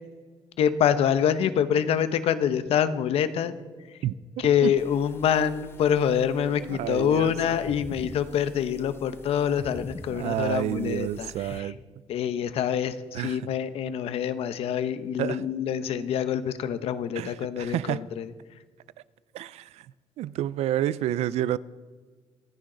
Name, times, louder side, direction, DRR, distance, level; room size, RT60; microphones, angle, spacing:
voice 1, 0.6-3.5 4.4-11.7 12.1-18.3, left 8 dB, 70° left, 0.9 m, -26 dB
voice 2, 4.0-4.7 6.7-7.6 10.1-11.8 13.1-13.5 15.2-15.5 17.2-18.1 19.3-19.9 20.2-21.6, right 13 dB, 85° right, 0.4 m, -30 dB
sound 1, 4.8-11.6, left 3 dB, 20° left, 0.7 m, -45 dB
24.5 x 10.5 x 3.9 m
cardioid pair, 170°, 11 cm